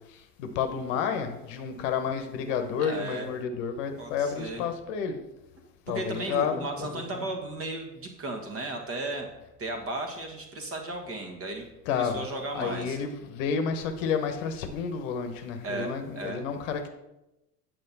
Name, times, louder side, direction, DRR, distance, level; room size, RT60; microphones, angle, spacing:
voice 1, 0.1-5.2 5.9-7.2 11.9-12.3 12.5-16.9, left 6 dB, 50° left, 7 dB, 1.1 m, -30 dB
voice 2, 2.8-3.3 4.0-4.6 5.6-9.3 9.6-13.0 15.6-16.4, right 2 dB, 30° right, 4 dB, 1.6 m, -35 dB
8.5 x 6.2 x 4.0 m, 0.94 s
figure-of-eight pair, 75°, 47 cm